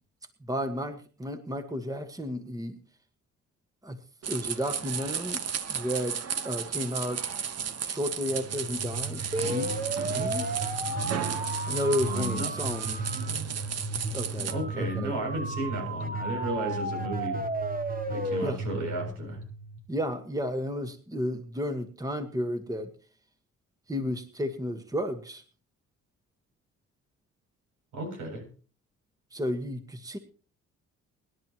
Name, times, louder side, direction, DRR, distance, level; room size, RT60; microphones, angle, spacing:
voice 1, 0.5-2.8 3.8-4.0 4.3-5.4 5.7-6.2 6.4-7.2 7.8-9.7 10.1-10.5 11.7-13.2 14.1-15.1 18.4-18.6 19.9-22.9 23.9-25.4 29.3-30.2, equal, 10° right, 8 dB, 1.5 m, -32 dB
sound 1, 4.2-14.5, right 7 dB, 55° right, 1.3 m, -34 dB
sound 2, 8.3-20.1, right 2 dB, 30° right, 1.5 m, -33 dB
voice 2, 12.0-12.7 14.5-17.4 18.1-19.4 27.9-28.4, right 1 dB, 85° right, 2 dB, 7.5 m, -34 dB
24.5 x 11.0 x 3.0 m, 0.38 s
cardioid pair, 90°, 30 cm